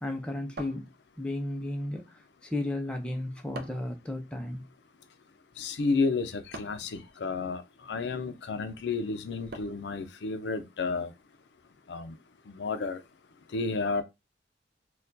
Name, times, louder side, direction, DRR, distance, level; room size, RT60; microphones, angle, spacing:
voice 1, 0.0-4.6, left 1 dB, 5° left, 0.5 m, -34 dB
sound 1, 0.6-1.4 3.5-4.0 6.5-6.9 9.5-9.9, right 2 dB, 60° right, 0.5 m, -43 dB
voice 2, 5.6-11.1 11.9-12.2 12.5-13.0 13.5-14.0, left 4 dB, 75° left, 0.5 m, -31 dB
4.2 x 2.3 x 2.6 m
head